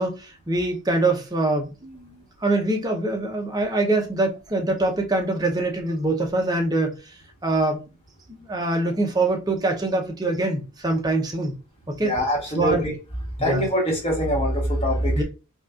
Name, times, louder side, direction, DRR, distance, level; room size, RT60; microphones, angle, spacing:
voice 1, 0.0-7.0 7.4-7.8 8.3-11.6 11.9-12.1 12.6-12.8 13.4-13.6 15.1-15.2, right 2 dB, 15° right, 0.7 m, -24 dB
voice 2, 12.0-12.9 13.4-15.2, equal, 25° left, 1.2 m, -23 dB
5.3 x 2.4 x 2.4 m
head